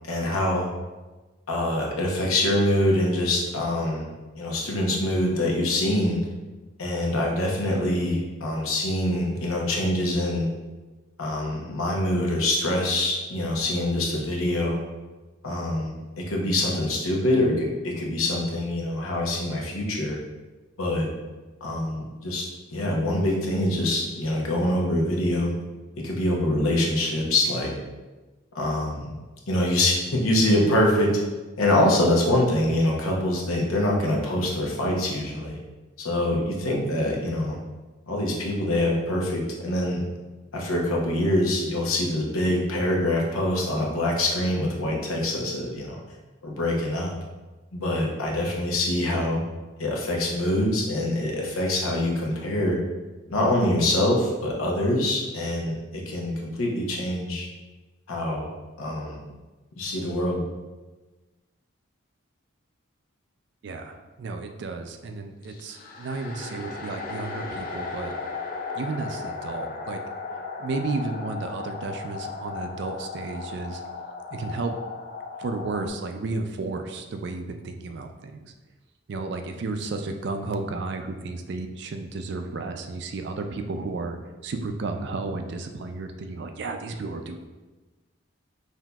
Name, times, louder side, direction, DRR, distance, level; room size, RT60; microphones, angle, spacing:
voice 1, 0.1-0.7 1.5-4.1 4.3-6.2 6.8-10.5 11.2-14.8 15.4-20.2 20.8-21.1 21.6-25.5 26.0-27.7 28.5-29.1 29.5-31.2 31.6-35.6 36.0-37.6 38.1-40.0 40.5-46.0 46.4-47.1 47.7-49.4 49.8-52.8 53.3-57.5 58.1-58.5 58.8-59.2 59.8-60.4, left 1 dB, 85° left, -1 dB, 0.8 m, -25 dB
voice 2, 63.6-68.1 68.7-70.0 70.6-73.8 74.3-74.7 75.4-78.5 79.1-87.4, right 3 dB, 55° right, 6 dB, 0.3 m, -33 dB
sound 1, 65.4-75.9, left 4 dB, 40° left, 0.4 m, -36 dB
5.8 x 2.6 x 2.3 m, 1.2 s
head